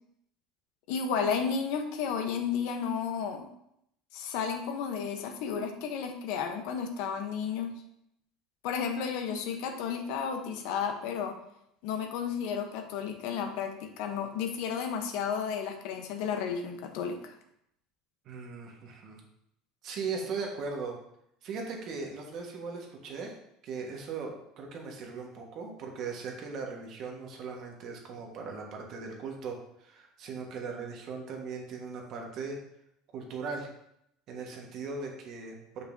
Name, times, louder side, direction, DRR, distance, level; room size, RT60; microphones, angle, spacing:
voice 1, 0.9-3.4 4.1-7.7 8.6-11.4 11.8-17.3, left 6 dB, 70° left, 6 dB, 0.8 m, -32 dB
voice 2, 18.2-19.2 19.8-21.0 21.4-23.3 23.6-32.6 33.1-33.7 34.3-35.8, right 4 dB, 50° right, 1 dB, 1.4 m, -38 dB
6.6 x 5.4 x 2.7 m, 0.77 s
supercardioid pair, 135°, 0 cm